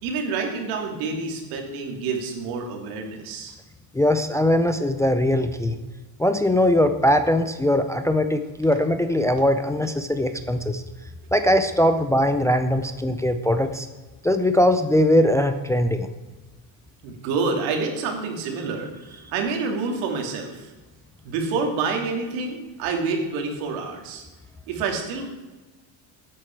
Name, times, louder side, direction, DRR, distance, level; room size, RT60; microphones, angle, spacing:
voice 1, 0.0-3.5 17.0-20.7 21.2-24.2 24.7-25.3, right 4 dB, 90° right, 2 dB, 2.8 m, -28 dB
voice 2, 3.9-5.8 6.2-10.8 11.3-13.9 14.2-16.1, left 1 dB, 5° left, 8 dB, 0.4 m, -21 dB
14.5 x 9.1 x 4.6 m, 1.2 s
cardioid pair, 140°, 47 cm